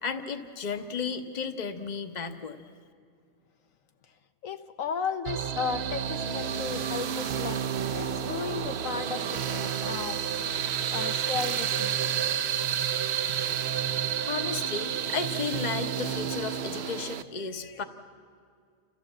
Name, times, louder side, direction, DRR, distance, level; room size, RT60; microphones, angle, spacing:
voice 1, 0.0-2.6 14.2-17.8, left 5 dB, 35° left, 8 dB, 1.1 m, -34 dB
voice 2, 4.4-10.2 10.9-12.1, left 6 dB, 75° left, 8 dB, 1.1 m, -35 dB
sound 1, 5.2-17.2, right 8 dB, 55° right, 0.8 m, -30 dB
30.0 x 14.0 x 7.4 m, 2.2 s
omnidirectional pair, 1.4 m